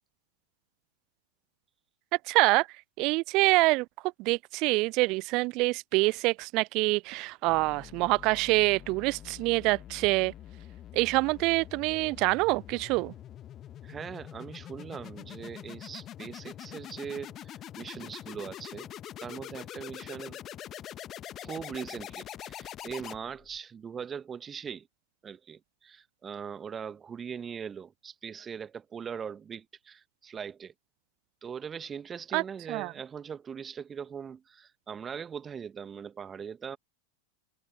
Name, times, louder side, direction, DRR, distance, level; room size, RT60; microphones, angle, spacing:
voice 1, 2.3-2.7 3.0-3.9 4.2-10.3 10.9-13.1 32.3-32.4 32.7-32.9, right 24 dB, 40° right, 0.3 m, -26 dB
sound 1, 7.5-23.6, left 11 dB, 30° left, 1.1 m, -45 dB
voice 2, 13.8-18.9 19.2-20.4 21.4-24.9 25.2-30.7 31.4-36.8, right 7 dB, 20° right, 1.6 m, -40 dB
figure-of-eight pair, 90°, 0 cm